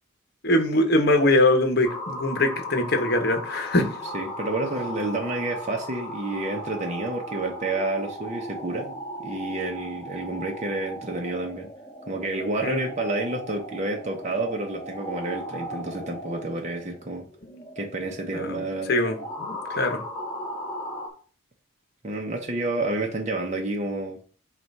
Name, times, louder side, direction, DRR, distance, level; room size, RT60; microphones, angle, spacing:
voice 1, 0.4-3.9 12.6-12.9 17.5-17.6 18.3-18.6 18.9-20.0, left 1 dB, 50° left, 6 dB, 1.2 m, -22 dB
sound 1, 1.8-21.1, equal, 15° left, 1.8 m, -37 dB
voice 2, 4.1-9.0 9.2-11.7 12.1-17.3 17.8-18.9 22.0-24.2, right 2 dB, 35° right, 1 dB, 0.8 m, -29 dB
7.6 x 2.5 x 5.4 m, 0.41 s
head